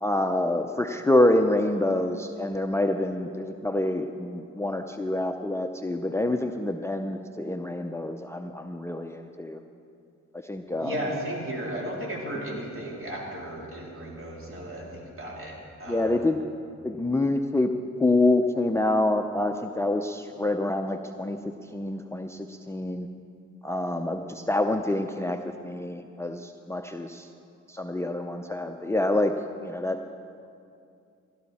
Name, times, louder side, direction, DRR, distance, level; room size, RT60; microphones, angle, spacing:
voice 1, 0.0-9.6 10.3-11.0 15.9-16.4 16.8-17.7 18.0-21.4 21.7-23.1 23.6-27.3 27.7-29.3 29.6-30.0, left 2 dB, 10° left, 6 dB, 0.6 m, -26 dB
voice 2, 10.8-16.2, equal, 45° right, -3 dB, 3.7 m, -35 dB
17.0 x 12.0 x 4.2 m, 2.5 s
cardioid pair, 60°, 29 cm